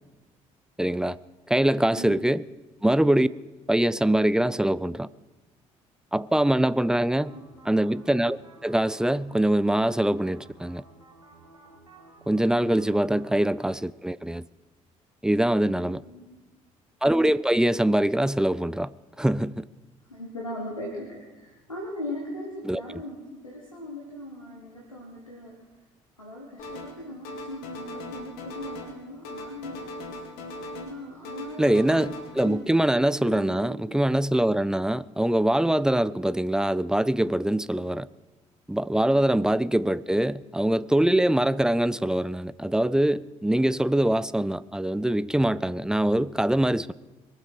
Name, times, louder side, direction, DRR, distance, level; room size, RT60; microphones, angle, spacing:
voice 1, 0.8-1.2 1.5-2.4 2.8-3.3 3.7-5.1 6.1-7.3 7.6-10.8 12.3-14.4 15.2-16.0 17.0-18.9 19.2-19.7 22.6-23.0 31.6-38.1 38.7-46.9, right 1 dB, 5° right, 0.4 m, -23 dB
sound 1, 6.8-13.7, right 2 dB, 85° right, 1.5 m, -53 dB
voice 2, 15.6-16.4 20.1-25.7 26.2-29.9 30.7-31.8 32.4-32.8 33.2-33.8, left 1 dB, 90° left, 1.4 m, -39 dB
sound 2, 26.6-27.0 27.2-29.0 29.2-31.0 31.3-32.5, left 1 dB, 65° left, 2.2 m, -39 dB
22.0 x 8.0 x 6.3 m
figure-of-eight pair, 50°, 17 cm